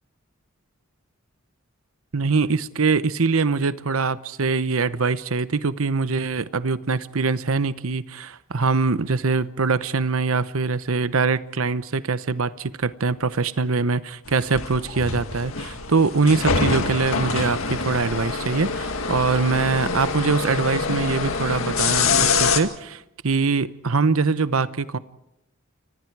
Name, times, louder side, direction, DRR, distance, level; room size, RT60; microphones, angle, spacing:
voice 1, 2.1-25.0, right 4 dB, 75° right, 15 dB, 0.9 m, -23 dB
sound 1, 14.3-22.6, left 4 dB, 75° left, 2.0 m, -25 dB
29.5 x 25.0 x 4.7 m, 0.80 s
head